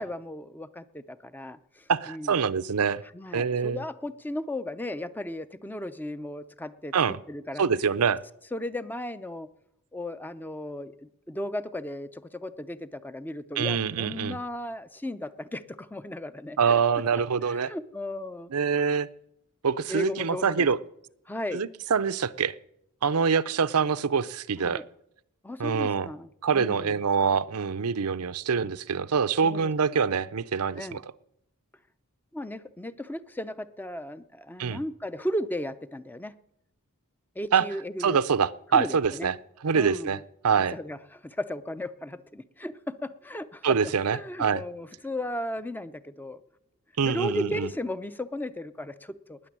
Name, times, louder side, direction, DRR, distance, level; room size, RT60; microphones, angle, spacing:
voice 1, 0.0-2.4 3.1-6.9 7.3-7.7 8.5-9.5 9.9-16.7 17.1-17.2 17.5-18.5 19.9-20.7 21.3-21.6 24.6-24.9 25.4-27.0 29.4-30.0 30.8-31.0 32.3-36.3 37.4-38.2 38.7-39.3 39.7-40.2 40.7-46.4 47.0-49.5, left 1 dB, 10° left, 0.6 m, -35 dB
voice 2, 1.9-3.0 3.3-3.8 6.9-7.2 7.6-8.2 13.6-14.4 16.6-17.7 18.5-19.1 19.6-20.8 21.5-22.5 23.0-24.8 25.6-26.1 26.4-31.0 34.6-34.8 37.5-37.6 38.0-39.3 39.6-40.7 43.6-44.6 47.0-47.7, right 6 dB, 80° right, 0.6 m, -25 dB
19.5 x 6.8 x 10.0 m
head